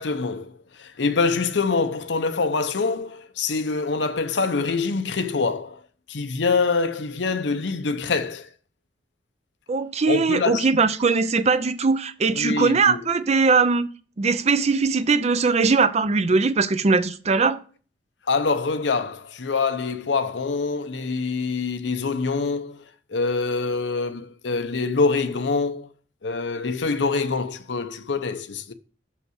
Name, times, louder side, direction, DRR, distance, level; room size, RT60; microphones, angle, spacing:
voice 1, 0.0-5.8 6.1-8.5 10.1-10.7 12.3-13.0 18.3-22.8 23.1-25.9 26.2-28.7, left 4 dB, 70° left, 0.7 m, -25 dB
voice 2, 9.7-13.9 14.2-17.6, right 4 dB, 35° right, 0.5 m, -20 dB
6.0 x 5.6 x 6.3 m
head